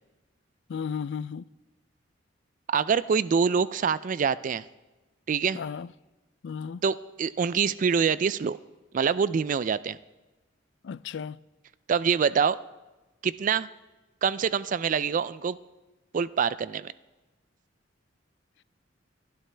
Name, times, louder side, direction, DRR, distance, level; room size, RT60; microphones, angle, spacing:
voice 1, 0.7-1.5 5.5-5.9 6.4-6.8 10.8-11.4, left 6 dB, 65° left, 0.4 m, -34 dB
voice 2, 2.7-4.6 5.3-5.6 6.8-8.6 8.9-10.0 11.9-12.6 13.2-13.7 14.2-15.6 16.1-16.9, right 6 dB, 45° right, 0.3 m, -25 dB
22.0 x 12.5 x 3.3 m
head